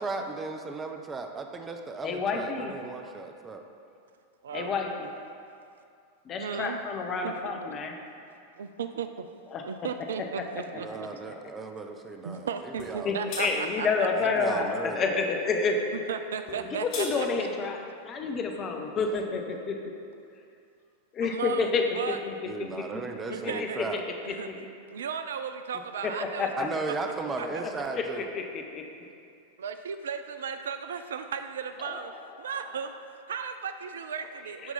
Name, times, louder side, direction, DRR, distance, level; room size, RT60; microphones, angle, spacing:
voice 1, 0.0-3.6 10.7-13.2 14.2-15.1 22.5-24.0 26.6-28.3, right 3 dB, 20° right, 5 dB, 0.6 m, -36 dB
voice 2, 2.0-2.7 4.5-4.9 6.3-8.0 9.5-9.6 13.0-15.8 16.6-19.8 21.1-22.7 23.4-24.0 24.5-24.7 26.0-26.1 26.4-26.7 27.6-28.0 28.3-28.8 31.8-32.0 34.6-34.7, left 4 dB, 30° left, 2 dB, 0.9 m, -29 dB
voice 3, 4.4-4.7 6.4-6.8 7.2-7.7 8.6-9.3 9.7-11.1 12.2-14.1 16.1-17.7 21.2-22.2 22.7-22.9 23.3-23.8 24.2-24.5 24.9-27.0 27.4-27.6 29.6-32.1 32.4-32.9 33.3-34.7, right 7 dB, 65° right, 9 dB, 0.4 m, -35 dB
sound 1, 12.8-13.0 13.3-13.5 16.5-17.1, left 3 dB, 45° left, 1.5 m, -36 dB
12.0 x 4.6 x 4.2 m, 2.4 s
figure-of-eight pair, 90°, 0 cm